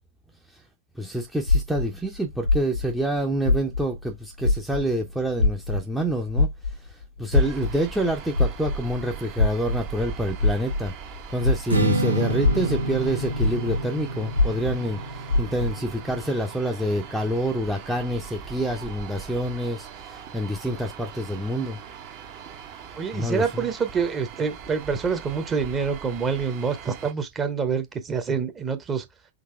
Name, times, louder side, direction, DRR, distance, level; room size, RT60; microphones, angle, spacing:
voice 1, 1.0-10.9 11.3-21.8 23.1-23.7, equal, 5° right, 0.7 m, -27 dB
sound 1, 1.5-4.1 4.4-11.9 12.3-15.8, left 3 dB, 85° left, 0.6 m, -24 dB
sound 2, 7.3-27.1, right 7 dB, 45° right, 1.2 m, -41 dB
Strum, 11.7-18.0, right 1 dB, 80° right, 0.7 m, -29 dB
voice 2, 22.9-29.0, right 6 dB, 20° right, 1.0 m, -26 dB
4.0 x 2.9 x 4.4 m
figure-of-eight pair, 90°, 0 cm